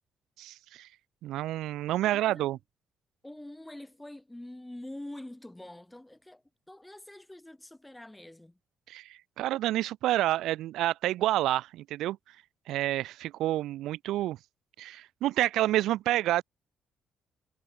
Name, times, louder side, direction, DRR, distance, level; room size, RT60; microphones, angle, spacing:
voice 1, 0.4-0.9 1.2-2.6 8.9-12.2 12.7-14.4 14.8-16.4, right 14 dB, 85° right, 0.4 m, -29 dB
voice 2, 2.0-2.5 3.2-8.6, left 1 dB, 10° left, 5.7 m, -45 dB
cardioid pair, 90°, 0 cm